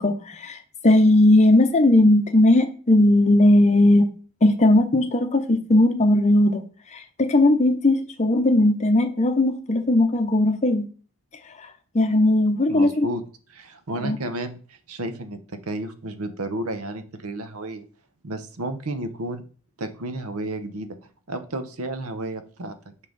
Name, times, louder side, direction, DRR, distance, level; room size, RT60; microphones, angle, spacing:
voice 1, 0.0-4.1 4.4-10.9 11.4-13.1 14.0-14.2, left 1 dB, 30° left, 0.6 m, -18 dB
voice 2, 12.7-13.2 13.5-15.4 15.7-17.8 18.2-19.4 19.8-21.0 21.3-22.7, right 1 dB, 75° right, 0.9 m, -32 dB
6.4 x 5.4 x 3.9 m
head